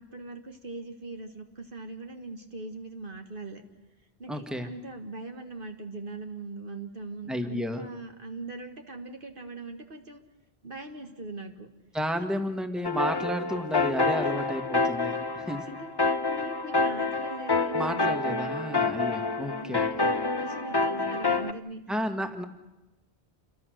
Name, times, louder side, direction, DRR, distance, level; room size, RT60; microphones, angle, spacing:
voice 1, 0.0-3.6 4.2-10.2 10.6-11.7 14.2-14.3 15.7-18.0 19.2-19.3 19.6-19.7 20.3-21.8, right 2 dB, 55° right, 5 dB, 1.8 m, -41 dB
voice 2, 4.3-4.7 7.3-7.8 11.9-15.7 17.7-20.1 21.9-22.4, equal, ahead, 6 dB, 1.8 m, -32 dB
sound 1, 12.8-21.5, left 3 dB, 25° left, 0.8 m, -28 dB
28.5 x 22.5 x 6.5 m, 1.0 s
omnidirectional pair, 1.1 m